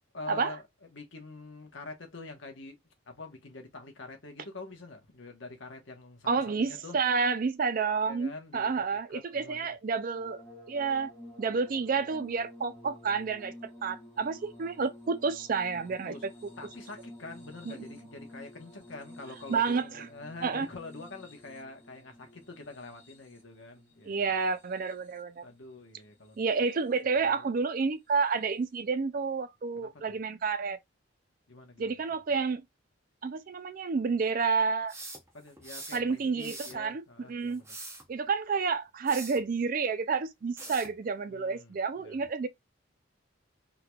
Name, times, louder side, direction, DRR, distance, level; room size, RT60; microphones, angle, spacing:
voice 1, 0.1-0.6 0.9-2.8 3.1-7.0 8.0-8.8 9.1-9.7 15.7-16.2 16.6-24.4 25.4-26.4 27.4-27.5 29.8-30.2 31.5-31.9 35.3-37.8 41.3-41.7 42.0-42.2, left 3 dB, 60° left, 1.1 m, -46 dB
voice 2, 6.3-10.4 10.7-11.1 11.4-13.5 13.8-16.3 17.7-17.8 19.5-20.1 20.4-20.7 24.1-25.4 26.4-30.8 31.8-32.6 33.2-34.9 35.9-37.0 37.3-37.6 38.1-42.5, right 5 dB, 40° right, 0.3 m, -30 dB
sound 1, 10.1-25.4 26.3-27.0 28.4-28.5, left 1 dB, 10° left, 1.3 m, -51 dB
sound 2, 34.9-36.0 36.4-36.8 37.5-38.0 39.1-39.4 40.6-40.9, right 2 dB, 15° right, 0.7 m, -43 dB
3.7 x 3.1 x 2.3 m
head